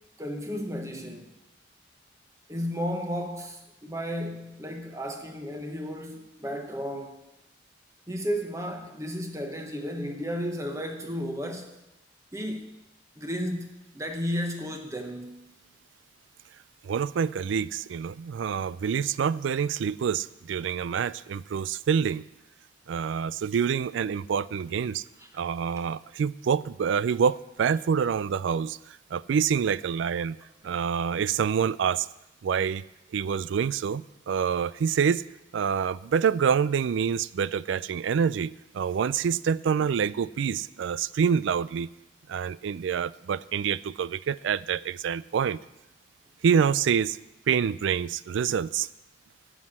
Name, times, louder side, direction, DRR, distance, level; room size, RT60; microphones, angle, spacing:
voice 1, 0.2-1.3 2.5-7.2 8.1-11.7 12.3-12.7 13.2-15.5 25.2-25.3, equal, 15° right, 4 dB, 1.1 m, -33 dB
voice 2, 16.8-22.2 22.9-25.0 25.3-28.8 29.1-30.4 30.6-32.1 32.4-32.8 33.1-35.2 35.5-41.9 42.3-45.6 46.4-47.2 47.5-48.9, right 7 dB, 80° right, 19 dB, 0.3 m, -26 dB
9.6 x 7.8 x 7.3 m, 0.95 s
head